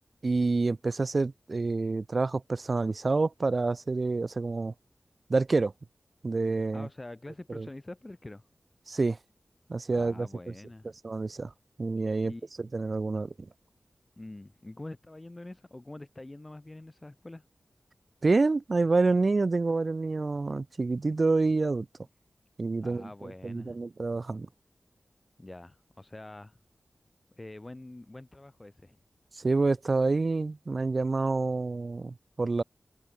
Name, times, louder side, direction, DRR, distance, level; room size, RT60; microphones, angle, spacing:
voice 1, 0.2-4.7 5.3-5.7 6.2-6.9 7.5-7.7 8.9-9.2 9.7-10.3 11.0-11.5 11.8-12.3 12.6-13.5 18.2-21.9 22.6-24.5 29.4-32.6, right 3 dB, 50° right, 0.4 m, -27 dB
voice 2, 6.7-8.4 9.9-11.0 12.2-12.5 14.2-17.5 22.8-23.8 25.4-26.6 27.4-29.0, left 2 dB, 25° left, 2.1 m, -45 dB
wide cardioid pair, 95°, 0 cm